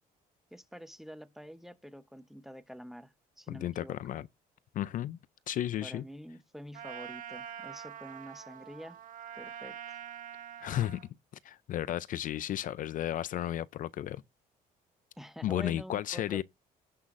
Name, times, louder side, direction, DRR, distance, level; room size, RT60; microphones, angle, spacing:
voice 1, 0.5-4.0 5.8-9.0 9.4-10.0 15.2-16.4, equal, ahead, 0.7 m, -47 dB
voice 2, 3.5-4.3 4.7-5.2 5.5-6.0 10.6-11.0 11.4-14.2 15.4-16.4, left 12 dB, 50° left, 0.4 m, -33 dB
Trumpet, 6.7-11.1, right 9 dB, 50° right, 1.6 m, -45 dB
16.5 x 5.6 x 2.5 m
cardioid pair, 110°, 17 cm